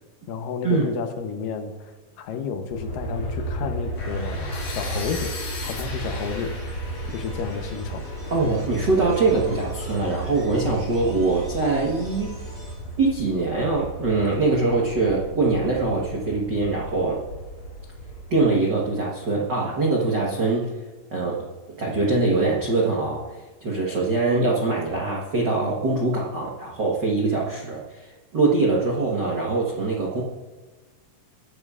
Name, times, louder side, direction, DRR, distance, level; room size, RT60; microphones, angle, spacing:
voice 1, 0.3-1.9 2.2-6.6 7.1-8.1, left 6 dB, 75° left, 6 dB, 2.5 m, -31 dB
Aircraft, 2.7-18.9, right 1 dB, 30° left, 3.1 m, -34 dB
sound 1, 3.9-13.1, left 1 dB, 10° right, 2.8 m, -43 dB
sound 2, 4.0-9.9, left 3 dB, 55° left, 4.3 m, -39 dB
voice 2, 8.3-12.4 13.0-17.2 18.3-20.7 21.1-30.2, right 3 dB, 75° right, -3 dB, 1.0 m, -23 dB
21.5 x 11.0 x 2.4 m, 1.3 s
omnidirectional pair, 4.1 m